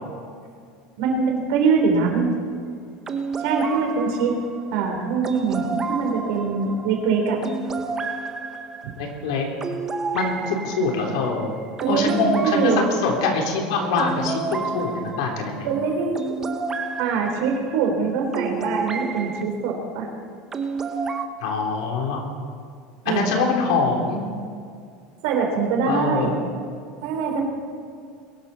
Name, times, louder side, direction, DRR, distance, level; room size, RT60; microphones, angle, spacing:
voice 1, 1.0-2.3 3.4-4.4 4.7-7.4 8.8-8.9 11.8-12.8 15.6-16.1 17.0-20.1 23.1-23.3 25.2-26.4 27.0-27.4, right 5 dB, 65° right, 2 dB, 3.6 m, -23 dB
sound 1, 3.1-19.4 20.5-21.3, right 4 dB, 15° right, 0.7 m, -31 dB
voice 2, 9.0-9.5 10.1-11.5 11.9-15.7 21.4-22.3 23.0-24.2 25.9-26.3, left 3 dB, 85° left, 1 dB, 3.3 m, -24 dB
22.0 x 12.0 x 4.2 m, 2.3 s
cardioid pair, 175°, 3 cm